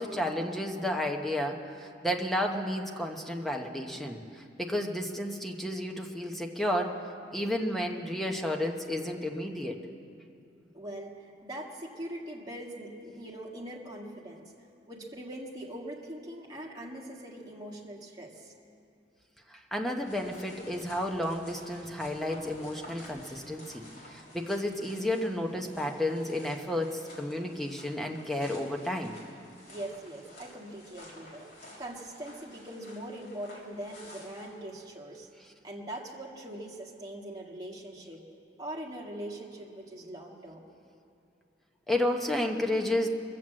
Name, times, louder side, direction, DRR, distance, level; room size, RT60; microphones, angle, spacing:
voice 1, 0.0-7.0 7.3-9.8 19.5-29.2 41.9-43.1, left 1 dB, ahead, 2 dB, 0.9 m, -32 dB
voice 2, 10.7-14.5 14.9-18.5 29.7-31.5 31.8-35.3 35.6-38.3 38.6-40.6, right 1 dB, 20° right, -3 dB, 1.7 m, -42 dB
sound 1, 20.0-34.5, left 1 dB, 55° left, 3.6 m, -52 dB
22.5 x 7.6 x 7.5 m, 2.6 s
head